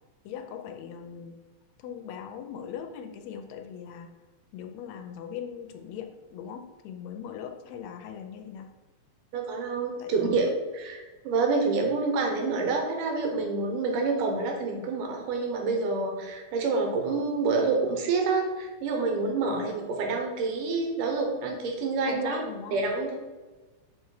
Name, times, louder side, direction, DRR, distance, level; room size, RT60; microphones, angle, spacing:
voice 1, 0.2-1.4 1.8-4.1 4.5-8.7 10.0-10.1 19.4-19.7 22.1-22.8, left 8 dB, 80° left, 6 dB, 1.6 m, -40 dB
voice 2, 9.3-22.4 22.7-23.2, right 3 dB, 85° right, 2 dB, 2.7 m, -27 dB
6.3 x 4.6 x 4.8 m, 1.3 s
omnidirectional pair, 3.6 m